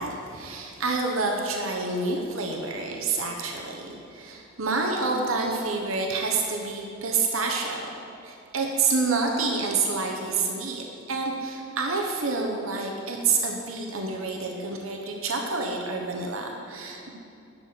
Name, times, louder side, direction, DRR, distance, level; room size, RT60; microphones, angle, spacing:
voice 1, 0.0-7.9 8.2-17.1, right 3 dB, 80° right, 1 dB, 1.1 m, -28 dB
11.0 x 6.9 x 4.5 m, 2.7 s
head